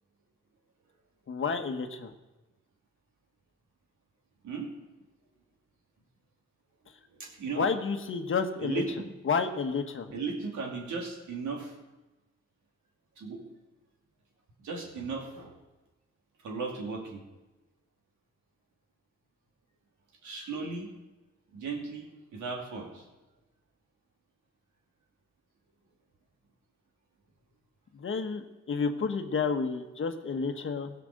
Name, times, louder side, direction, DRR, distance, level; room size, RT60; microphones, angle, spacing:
voice 1, 1.3-2.1 7.5-8.8 9.2-10.1 27.9-30.9, left 5 dB, 40° left, 6 dB, 1.2 m, -30 dB
voice 2, 7.1-7.7 8.6-9.1 10.1-11.7 13.2-13.4 14.6-15.6 16.4-17.2 20.2-20.9 21.5-23.0, right 4 dB, 75° right, 0 dB, 2.6 m, -36 dB
16.5 x 5.9 x 6.5 m, 1.1 s
cardioid pair, 90°, 30 cm